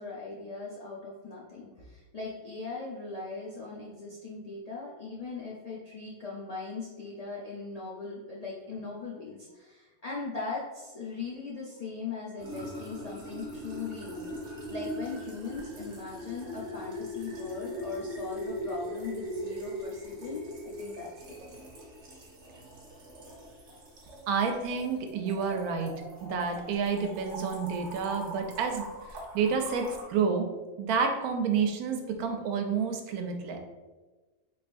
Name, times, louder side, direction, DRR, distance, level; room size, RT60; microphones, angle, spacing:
voice 1, 0.0-14.3 14.7-21.6, left 4 dB, 90° left, -5 dB, 0.3 m, -39 dB
sound 1, 12.4-30.0, equal, 55° right, 1.2 m, -41 dB
voice 2, 24.3-25.9 26.2-30.5 30.8-33.6, right 5 dB, 85° right, 4 dB, 1.1 m, -29 dB
3.5 x 3.3 x 2.5 m, 1.2 s
omnidirectional pair, 1.5 m